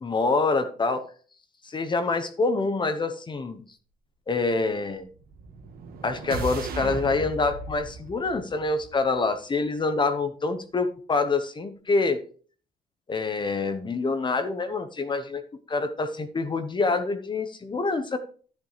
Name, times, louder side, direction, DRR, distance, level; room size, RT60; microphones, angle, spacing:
voice 1, 0.0-1.0 1.6-3.6 4.3-5.1 6.0-12.2 13.1-15.4 15.7-18.2, left 3 dB, 25° left, 9 dB, 1.0 m, -26 dB
sound 1, 5.1-9.4, right 3 dB, 65° right, 1.7 m, -37 dB
10.5 x 9.9 x 3.3 m, 0.42 s
cardioid pair, 110°, 17 cm